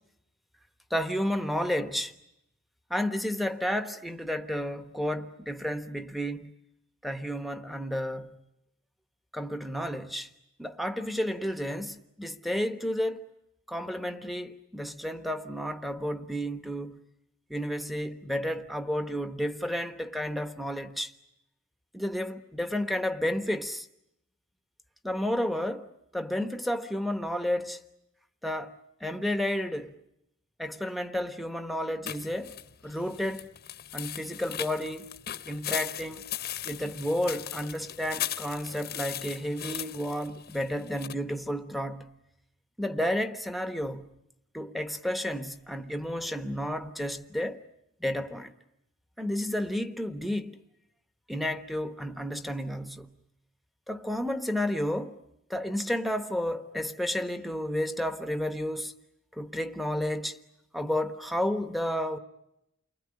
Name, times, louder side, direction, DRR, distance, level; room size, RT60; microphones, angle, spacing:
voice 1, 0.9-2.1 2.9-6.5 7.0-8.4 9.3-10.3 10.6-13.3 13.7-17.0 17.5-21.1 21.9-23.9 25.0-25.9 26.1-27.8 28.4-28.7 29.0-29.9 30.6-32.6 32.8-33.5 33.9-35.1 35.5-36.2 36.6-42.2 42.8-44.2 44.5-47.6 48.0-48.5 49.2-50.6 51.3-53.2 53.9-55.2 55.5-58.9 59.4-60.4 60.7-62.2, equal, ahead, 1.1 m, -31 dB
sound 1, 32.1-41.1, left 11 dB, 50° left, 1.0 m, -38 dB
29.5 x 20.5 x 9.8 m
head